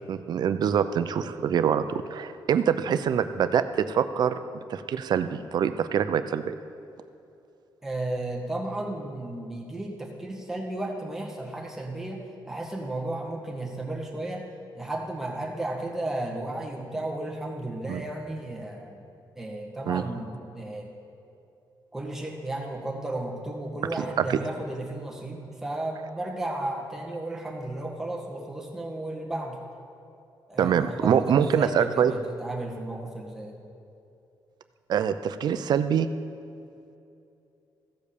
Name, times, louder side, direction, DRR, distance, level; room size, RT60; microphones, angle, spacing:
voice 1, 0.1-6.6 17.9-18.0 19.9-20.0 24.2-24.4 30.6-32.1 34.9-36.1, right 8 dB, 60° right, 11 dB, 0.6 m, -25 dB
voice 2, 7.8-14.5 14.7-19.0 19.3-20.9 21.9-29.6 30.5-33.6, right 1 dB, 5° right, -2 dB, 1.7 m, -34 dB
15.0 x 5.2 x 6.8 m, 2.7 s
cardioid pair, 120°, 8 cm